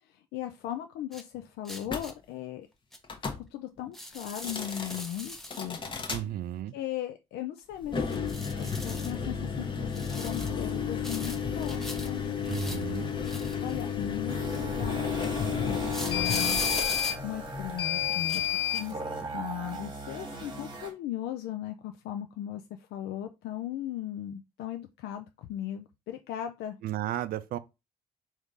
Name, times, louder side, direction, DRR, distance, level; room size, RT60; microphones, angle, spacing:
voice 1, 0.0-2.7 3.2-5.8 6.7-8.0 8.6-12.3 13.6-18.4 18.7-19.0 19.3-26.8, left 12 dB, 75° left, 0.4 m, -38 dB
sound 1, 1.1-1.2 1.7-2.1 2.9-3.0 3.9-5.7 8.1-9.2 9.9-10.6 11.0-12.1 12.5-13.9 15.9-17.2 18.1-18.5 18.7-18.9, equal, ahead, 0.7 m, -38 dB
sound 2, 1.9-2.1 3.0-3.4 4.3-5.0 5.5-6.2 7.8-18.9, left 7 dB, 30° left, 0.9 m, -31 dB
voice 2, 6.1-6.7 12.5-13.1 26.8-27.6, right 12 dB, 60° right, 0.4 m, -34 dB
sound 3, 14.3-20.9, right 2 dB, 25° right, 1.3 m, -39 dB
3.6 x 2.7 x 4.7 m
cardioid pair, 110°, 17 cm